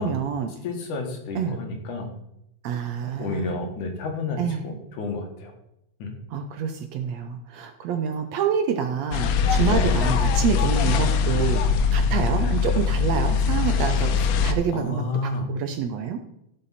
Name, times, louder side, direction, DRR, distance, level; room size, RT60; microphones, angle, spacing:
voice 1, 0.0-0.5 1.3-1.6 2.6-3.5 4.4-4.7 6.3-11.6 11.9-15.0 15.5-16.2, right 7 dB, 70° right, 6 dB, 1.7 m, -27 dB
voice 2, 0.6-2.1 3.0-5.5 6.0-6.1 9.6-10.0 14.7-15.5, left 3 dB, 75° left, 3 dB, 3.0 m, -30 dB
sound 1, 9.1-14.5, left 6 dB, 90° left, 2.4 m, -22 dB
15.0 x 5.9 x 4.1 m, 0.80 s
omnidirectional pair, 3.6 m